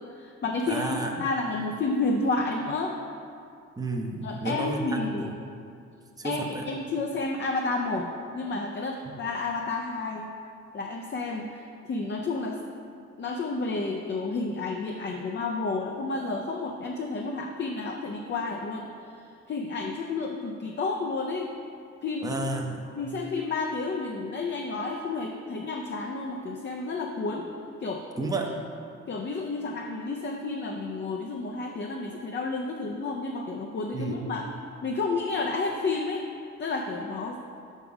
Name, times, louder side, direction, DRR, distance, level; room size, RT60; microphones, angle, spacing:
voice 1, 0.1-3.0 4.2-5.3 6.2-10.3 10.7-12.6 13.2-21.5 22.0-22.3 22.9-27.5 27.8-28.1 28.5-28.6 29.1-34.5 34.8-36.3 36.6-37.4, left 3 dB, 35° left, 1 dB, 0.6 m, -31 dB
voice 2, 0.7-1.3 3.8-5.3 6.2-6.7 22.2-22.9 28.2-28.5 33.9-34.3, right 2 dB, 10° right, 1 dB, 0.7 m, -32 dB
5.9 x 5.5 x 4.8 m, 2.4 s
cardioid pair, 90°, 30 cm